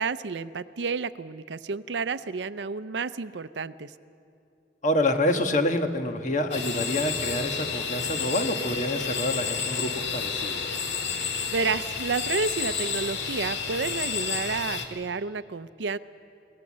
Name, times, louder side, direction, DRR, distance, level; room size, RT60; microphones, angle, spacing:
voice 1, 0.0-3.9 11.5-16.0, right 4 dB, 85° right, 14 dB, 0.6 m, -30 dB
voice 2, 4.8-10.8, left 1 dB, 45° left, 6 dB, 1.4 m, -27 dB
sound 1, 6.5-14.9, left 6 dB, 75° left, 2.0 m, -30 dB
24.0 x 18.5 x 7.5 m, 2.6 s
head